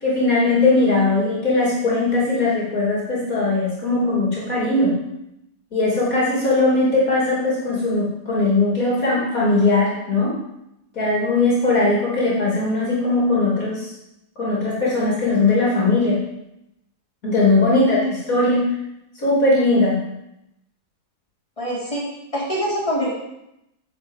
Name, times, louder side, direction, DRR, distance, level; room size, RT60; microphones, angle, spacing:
voice 1, 0.0-5.0 5.7-10.4 10.9-13.9 14.4-16.2 17.2-18.7 19.2-20.0, left 2 dB, 60° left, -5 dB, 3.2 m, -19 dB
voice 2, 17.8-18.1 21.6-22.0 22.3-23.1, equal, 20° left, -6 dB, 4.2 m, -25 dB
9.9 x 6.0 x 8.1 m, 0.85 s
omnidirectional pair, 1.7 m